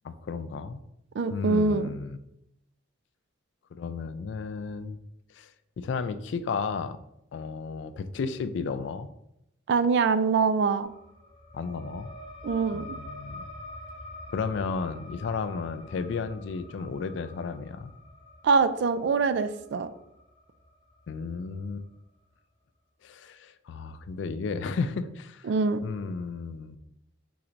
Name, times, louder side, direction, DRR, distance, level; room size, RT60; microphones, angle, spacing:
voice 1, 0.0-0.8 1.3-2.2 3.7-5.0 5.3-5.5 5.8-7.0 7.3-9.1 11.5-12.1 12.7-13.4 14.3-17.9 21.1-21.8 23.0-25.5 25.8-26.8, left 5 dB, 60° left, 11 dB, 0.3 m, -33 dB
voice 2, 1.2-1.9 9.7-10.9 12.4-13.0 18.4-19.9 25.4-25.8, right 4 dB, 60° right, 11 dB, 0.3 m, -24 dB
sound 1, 10.8-22.0, left 1 dB, 25° left, 0.8 m, -46 dB
4.0 x 2.5 x 4.4 m, 0.82 s
head